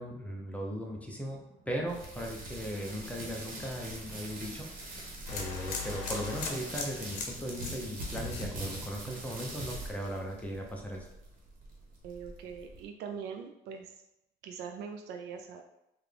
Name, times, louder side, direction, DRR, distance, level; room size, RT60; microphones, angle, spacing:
voice 1, 0.0-4.7 5.3-11.1, equal, 10° left, 0 dB, 0.6 m, -38 dB
sound 1, 0.7-7.7, right 2 dB, 35° right, 0.6 m, -56 dB
Rustling bubblewrap, 1.9-12.8, right 1 dB, 55° right, 1.1 m, -43 dB
sound 2, 5.3-9.3 9.6-10.1, left 5 dB, 90° left, 0.6 m, -40 dB
voice 2, 12.0-13.9 14.4-15.6, right 6 dB, 85° right, 4 dB, 0.4 m, -42 dB
3.7 x 2.3 x 3.3 m, 0.86 s
cardioid pair, 110°, 17 cm